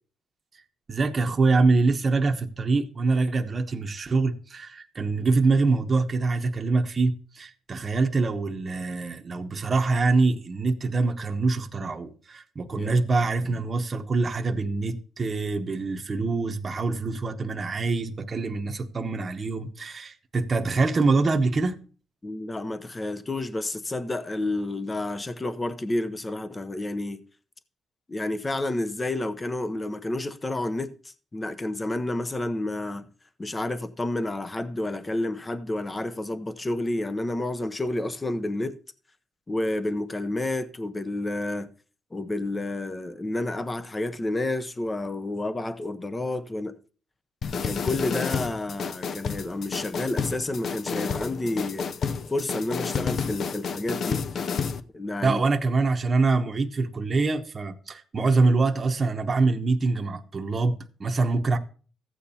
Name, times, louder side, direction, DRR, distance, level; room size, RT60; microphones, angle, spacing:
voice 1, 0.9-21.7 55.2-61.6, right 3 dB, 35° right, 0.9 m, -24 dB
voice 2, 12.7-13.0 13.5-13.6 22.2-27.2 28.1-33.1 33.4-38.8 39.5-41.7 42.1-46.7 47.6-51.9 52.3-54.2 54.9-55.4, left 2 dB, 20° left, 0.7 m, -30 dB
sound 1, 47.4-54.8, left 6 dB, 60° left, 0.6 m, -30 dB
14.5 x 8.7 x 2.8 m
cardioid pair, 90°, 0 cm